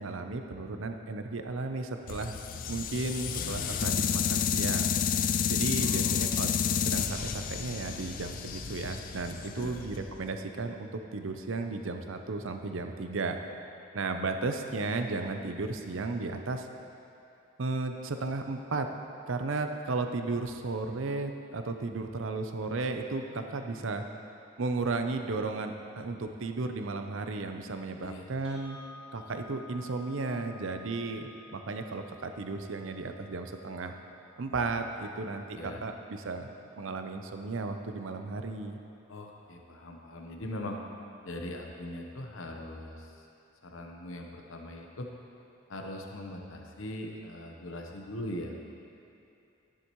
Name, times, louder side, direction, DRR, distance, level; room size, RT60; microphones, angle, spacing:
voice 1, 0.0-2.4 2.7-4.9 5.5-6.5 6.8-13.4 13.9-16.7 17.6-18.9 19.3-24.1 24.6-28.8 29.1-33.9 34.4-36.5 36.8-38.8, right 3 dB, 70° right, 6 dB, 0.6 m, -34 dB
sound 1, 2.1-10.2, left 7 dB, 40° left, 0.3 m, -30 dB
voice 2, 5.8-6.8 9.5-9.8 28.0-28.3 35.1-35.8 39.1-40.8 41.2-43.3 43.6-45.1 45.7-48.5, left 1 dB, 75° left, 2 dB, 0.9 m, -41 dB
sound 2, 28.4-36.5, left 3 dB, 30° right, 1.3 m, -54 dB
11.5 x 10.0 x 3.1 m, 2.7 s
head